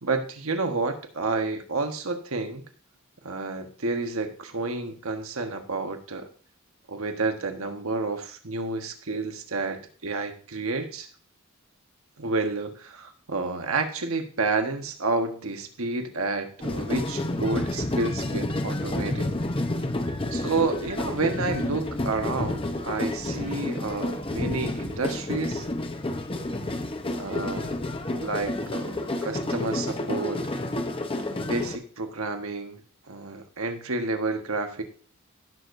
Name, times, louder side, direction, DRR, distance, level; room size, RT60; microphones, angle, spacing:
voice 1, 0.0-2.6 3.2-6.3 6.9-11.1 12.2-19.3 20.3-25.7 27.1-27.8 28.2-30.4 31.3-32.8 33.1-34.8, right 3 dB, 75° right, 5 dB, 1.5 m, -30 dB
sound 1, 16.6-31.8, left 1 dB, 25° left, 1.0 m, -30 dB
17.0 x 6.6 x 2.7 m, 0.43 s
head